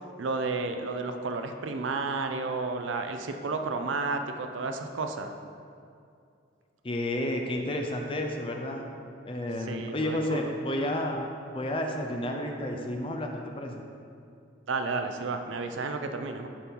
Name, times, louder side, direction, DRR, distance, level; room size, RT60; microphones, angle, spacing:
voice 1, 0.2-5.3 9.7-10.5 14.7-16.5, right 3 dB, 85° right, 6 dB, 0.5 m, -32 dB
voice 2, 6.8-8.9 9.2-11.3 11.5-13.8, left 1 dB, 30° left, 2 dB, 0.6 m, -31 dB
7.1 x 5.4 x 4.6 m, 2.4 s
head